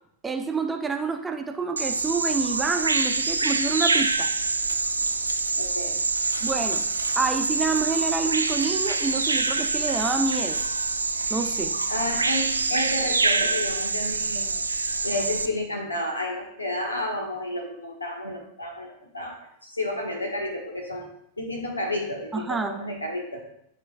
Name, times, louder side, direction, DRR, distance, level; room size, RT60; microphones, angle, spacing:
voice 1, 0.2-4.3 6.4-6.8 7.2-10.6 11.3-11.7 22.3-22.7, right 4 dB, 10° right, 4 dB, 0.9 m, -27 dB
Bird vocalization bird call bird song, 1.8-15.5, right 3 dB, 80° right, 0.4 m, -25 dB
voice 2, 5.6-6.0 11.9-14.6 15.0-21.1 21.4-23.4, left 1 dB, 80° left, 2 dB, 1.5 m, -31 dB
13.0 x 4.9 x 2.5 m, 0.73 s
figure-of-eight pair, 90°, 0 cm